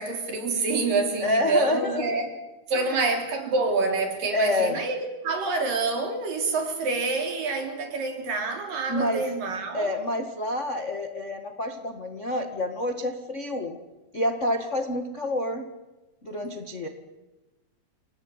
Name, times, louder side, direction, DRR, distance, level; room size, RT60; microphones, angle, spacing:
voice 1, 0.0-2.3 2.7-9.9, right 3 dB, 60° right, 5.1 m, -27 dB
voice 2, 1.2-2.0 4.3-4.8 8.9-9.2 9.7-13.8 14.1-15.7 16.2-16.9, left 1 dB, 50° left, 0.8 m, -27 dB
29.5 x 18.0 x 9.8 m
omnidirectional pair, 4.5 m